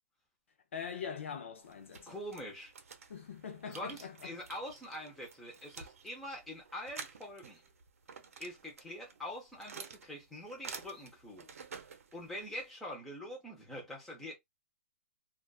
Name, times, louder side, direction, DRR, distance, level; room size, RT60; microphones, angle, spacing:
voice 1, 0.7-2.2 3.1-4.4, left 7 dB, 60° left, 0.5 m, -43 dB
sound 1, 1.6-12.7, right 5 dB, 75° right, 0.6 m, -51 dB
voice 2, 2.1-2.7 3.7-7.6 8.4-11.5 12.1-14.4, left 1 dB, 5° left, 0.7 m, -44 dB
2.4 x 2.3 x 2.3 m
hypercardioid pair, 170°, 8 cm